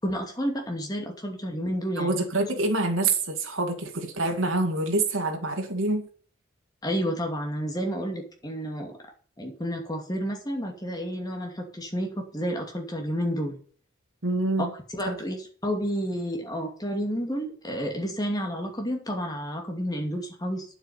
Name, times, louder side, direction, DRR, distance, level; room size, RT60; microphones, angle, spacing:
voice 1, 0.0-2.1 6.8-9.0 9.4-13.6 14.9-20.7, equal, 20° left, 2 dB, 2.5 m, -30 dB
voice 2, 2.0-6.1 14.2-14.7 15.1-15.2, right 2 dB, 80° right, 4 dB, 2.6 m, -26 dB
9.2 x 7.8 x 5.8 m, 0.44 s
head